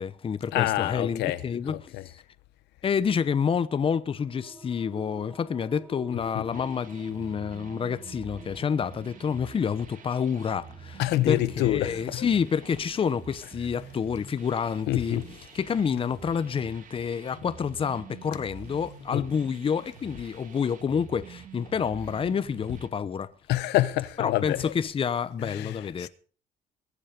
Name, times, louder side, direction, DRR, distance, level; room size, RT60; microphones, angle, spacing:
voice 1, 0.0-2.2 2.8-11.0 11.3-15.2 15.5-23.3 24.2-26.1, left 7 dB, 30° left, 0.9 m, -28 dB
voice 2, 0.5-2.1 6.3-6.4 11.0-12.3 14.9-15.2 19.1-19.2 23.5-24.7 25.4-26.1, left 15 dB, 85° left, 1.1 m, -27 dB
sound 1, 3.7-14.9, right 1 dB, 10° right, 4.1 m, -50 dB
sound 2, 6.5-22.9, right 6 dB, 50° right, 2.1 m, -47 dB
22.0 x 8.6 x 5.1 m
cardioid pair, 110°, 17 cm